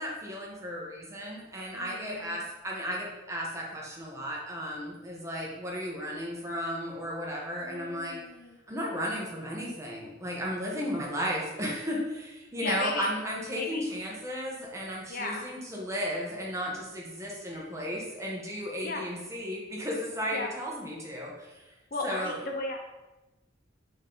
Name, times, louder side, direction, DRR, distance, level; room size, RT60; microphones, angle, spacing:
voice 1, 0.0-8.2 8.7-21.6 22.0-22.4, equal, 15° right, -4 dB, 1.4 m, -34 dB
voice 2, 1.7-2.5 7.6-8.6 12.6-13.1 13.5-13.9 15.1-15.5 18.8-19.0 20.3-20.5 21.9-22.8, left 2 dB, 50° left, 2 dB, 0.8 m, -36 dB
7.3 x 4.2 x 4.0 m, 1.0 s
head